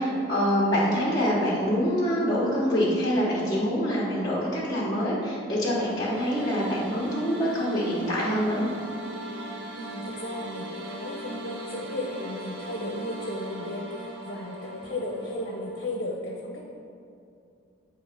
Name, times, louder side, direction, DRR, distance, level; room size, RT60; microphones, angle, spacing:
voice 1, 0.0-8.7, equal, 20° left, -7 dB, 1.1 m, -25 dB
sound 1, 5.7-15.9, right 1 dB, 65° right, 1.1 m, -39 dB
voice 2, 9.8-16.6, left 1 dB, 55° left, -2 dB, 0.7 m, -35 dB
7.9 x 2.9 x 5.0 m, 2.6 s
head